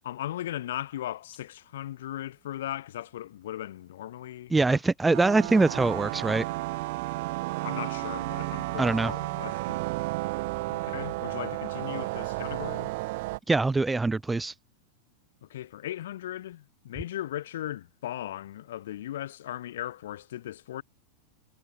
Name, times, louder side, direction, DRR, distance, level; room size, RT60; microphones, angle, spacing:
voice 1, 0.0-4.8 7.6-9.8 10.7-12.9 15.4-20.8, left 13 dB, 60° left, 2.8 m, -37 dB
voice 2, 4.5-6.4 8.8-9.1 13.5-14.5, right 3 dB, 10° right, 0.9 m, -23 dB
sound 1, 5.1-13.4, right 22 dB, 50° right, 2.0 m, -32 dB
figure-of-eight pair, 90°, 0 cm